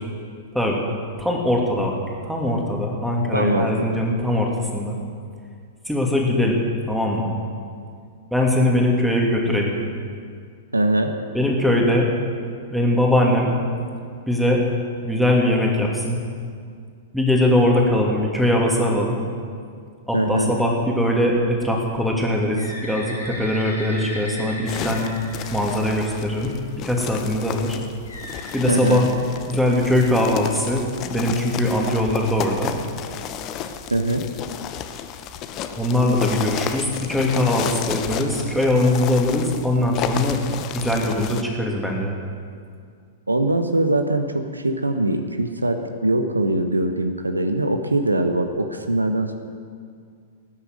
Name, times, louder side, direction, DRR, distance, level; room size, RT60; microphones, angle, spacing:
voice 1, 1.2-2.0 2.3-5.0 5.9-6.6 6.9-7.3 8.3-9.7 11.3-12.1 12.7-13.5 14.3-14.6 15.0-16.2 17.1-19.2 20.1-25.1 25.5-27.8 28.5-29.1 29.5-32.7 35.8-40.4 40.7-42.1, left 1 dB, ahead, -1 dB, 2.6 m, -21 dB
voice 2, 3.3-4.0 10.7-11.2 20.1-20.5 28.7-29.0 33.9-34.3 43.3-49.4, right 1 dB, 80° right, 7 dB, 1.0 m, -22 dB
Bird, 22.6-26.3 28.0-29.8, left 1 dB, 75° left, 3.1 m, -37 dB
sound 1, 24.7-41.4, left 9 dB, 35° left, 0.9 m, -32 dB
18.5 x 9.8 x 6.4 m, 2.2 s
figure-of-eight pair, 100°, 0 cm